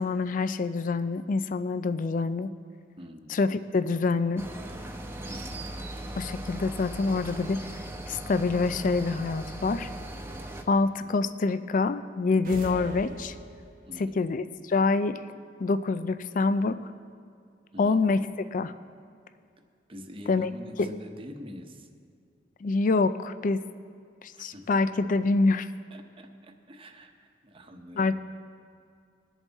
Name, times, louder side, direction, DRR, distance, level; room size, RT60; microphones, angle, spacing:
voice 1, 0.0-2.5 3.3-4.4 6.2-7.6 8.1-9.9 10.7-13.4 14.0-15.2 15.6-16.8 17.8-18.2 18.5-18.7 20.3-20.5 20.8-20.9 22.6-23.6 24.2-25.7 28.0-28.1, left 3 dB, 45° left, 12 dB, 0.4 m, -26 dB
voice 2, 3.0-3.4 5.3-5.7 11.0-11.2 13.8-14.3 17.7-18.0 19.9-21.9 24.3-24.8 25.9-28.1, equal, 30° right, 4 dB, 1.0 m, -45 dB
sound 1, 4.4-10.6, right 1 dB, 15° right, 0.8 m, -38 dB
sound 2, 12.4-14.0, right 1 dB, 50° right, 0.9 m, -40 dB
21.0 x 7.1 x 4.1 m, 2.3 s
head